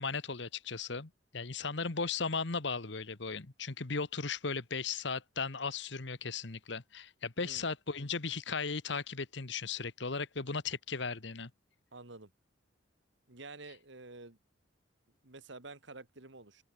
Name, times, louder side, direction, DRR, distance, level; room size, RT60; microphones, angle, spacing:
voice 1, 0.0-11.5, left 4 dB, 65° left, 1.3 m, -36 dB
voice 2, 11.9-12.3 13.3-14.4 15.2-16.6, right 3 dB, 70° right, 2.3 m, -49 dB
head